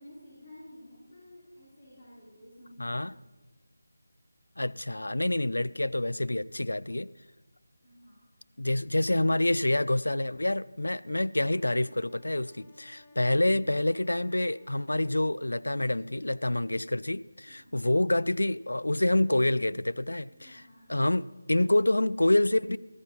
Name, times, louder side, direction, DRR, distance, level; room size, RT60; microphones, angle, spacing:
voice 1, 0.0-3.2 7.8-8.9 17.5-17.8 20.3-20.9, left 1 dB, 40° left, 4.0 m, -52 dB
voice 2, 2.8-3.1 4.6-7.1 8.6-20.6 20.9-22.8, left 1 dB, 80° left, 0.3 m, -27 dB
Wind instrument woodwind instrument, 11.3-15.6, left 2 dB, 15° left, 0.8 m, -59 dB
13.5 x 9.3 x 5.5 m
figure-of-eight pair, 160°, 0 cm